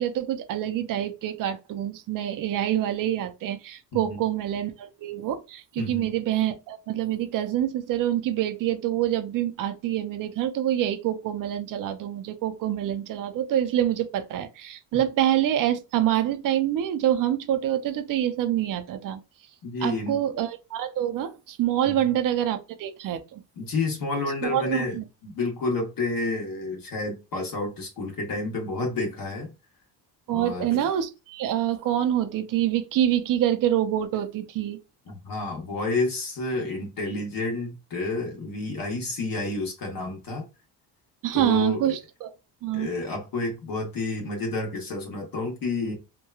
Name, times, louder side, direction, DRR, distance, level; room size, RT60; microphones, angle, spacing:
voice 1, 0.0-19.2 19.8-23.4 24.4-25.0 30.3-34.8 41.2-42.3 42.6-42.9, right 11 dB, 50° right, 0.5 m, -26 dB
voice 2, 3.9-4.2 5.8-6.1 19.6-20.2 21.8-22.1 23.6-29.5 30.3-30.8 35.1-40.4 41.3-41.8 42.7-46.0, left 3 dB, 50° left, 0.9 m, -30 dB
3.0 x 2.2 x 2.3 m
cardioid pair, 125°, 44 cm